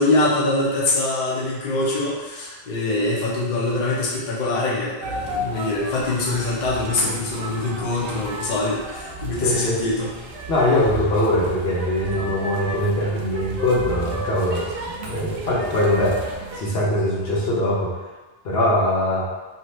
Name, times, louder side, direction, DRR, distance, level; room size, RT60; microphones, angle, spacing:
voice 1, 0.0-10.2, left 2 dB, 50° left, -6 dB, 0.7 m, -23 dB
sound 1, 5.0-16.6, right 2 dB, 70° right, 0.7 m, -33 dB
voice 2, 9.4-9.7 10.5-14.6 15.0-17.9 18.4-19.3, left 1 dB, 75° left, -6 dB, 1.0 m, -22 dB
2.7 x 2.4 x 3.1 m, 1.2 s
omnidirectional pair, 1.1 m